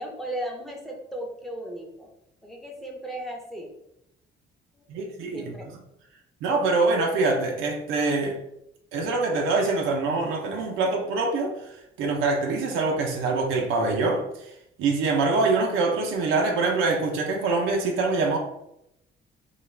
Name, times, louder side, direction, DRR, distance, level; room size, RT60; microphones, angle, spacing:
voice 1, 0.0-2.1 2.4-3.7 4.8-4.9 5.3-5.7, right 1 dB, ahead, 0 dB, 0.6 m, -36 dB
voice 2, 4.9-5.6 6.4-8.4 8.9-11.5 12.0-14.5 14.8-18.4, right 3 dB, 90° right, 1 dB, 0.5 m, -24 dB
2.3 x 2.2 x 3.1 m, 0.81 s
cardioid pair, 90°, 20 cm